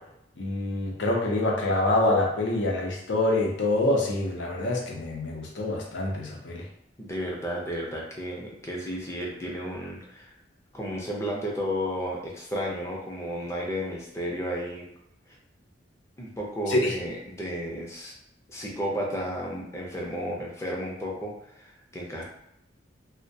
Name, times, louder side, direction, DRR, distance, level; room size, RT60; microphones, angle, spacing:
voice 1, 0.4-6.6 16.7-16.9, left 2 dB, 85° left, -1 dB, 0.6 m, -26 dB
voice 2, 7.0-10.3 10.7-14.9 15.3-15.4 16.2-18.1 18.5-22.2, equal, 15° left, -2 dB, 0.5 m, -33 dB
2.2 x 2.1 x 2.6 m, 0.78 s
head